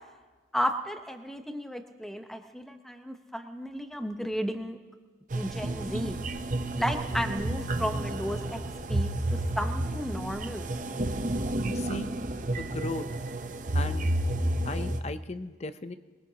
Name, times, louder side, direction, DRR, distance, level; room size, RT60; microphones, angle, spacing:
voice 1, 0.5-4.8 5.3-6.2 6.7-8.6 8.9-10.7, equal, ahead, 5 dB, 0.9 m, -33 dB
sound 1, 5.3-15.0, right 1 dB, 40° right, 0.7 m, -31 dB
voice 2, 11.6-12.1 12.6-13.1 13.7-14.1 14.6-16.0, left 2 dB, 35° left, 11 dB, 0.6 m, -36 dB
22.5 x 22.5 x 2.9 m, 1.3 s
head